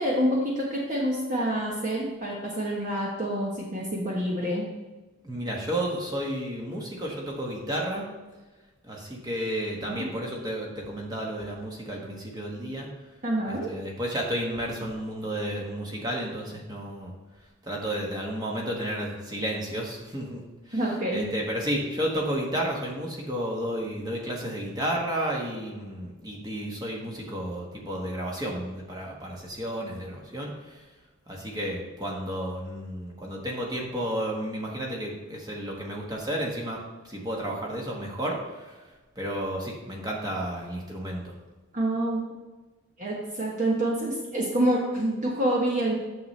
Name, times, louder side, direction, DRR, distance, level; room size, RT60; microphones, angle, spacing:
voice 1, 0.0-4.7 9.8-10.0 13.2-13.7 20.7-21.3 41.7-42.3 43.0-46.0, right 1 dB, 35° right, -3 dB, 1.1 m, -27 dB
voice 2, 5.2-8.0 8.8-12.9 13.5-17.1 17.6-20.4 20.7-20.8 21.1-30.8 31.3-36.8 37.0-38.8 39.1-41.3, right 1 dB, 20° right, -2 dB, 1.3 m, -32 dB
9.3 x 6.6 x 3.2 m, 1.2 s
head